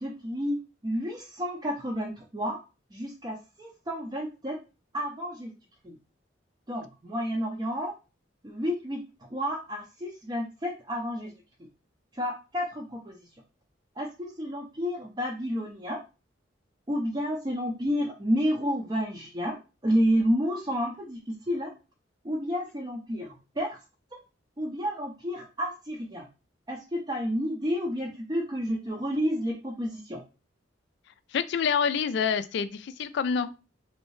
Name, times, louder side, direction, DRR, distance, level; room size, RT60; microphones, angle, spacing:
voice 1, 0.0-2.6 2.9-4.6 4.9-5.5 5.8-6.0 6.7-7.9 8.4-9.0 9.3-11.3 12.1-13.2 14.0-16.0 16.9-19.6 19.8-21.7 22.2-23.8 24.1-24.2 24.6-26.3 26.7-30.2, equal, 20° right, -2 dB, 0.5 m, -30 dB
voice 2, 31.3-33.5, left 6 dB, 60° left, 13 dB, 0.3 m, -27 dB
3.2 x 2.6 x 3.1 m, 0.31 s
head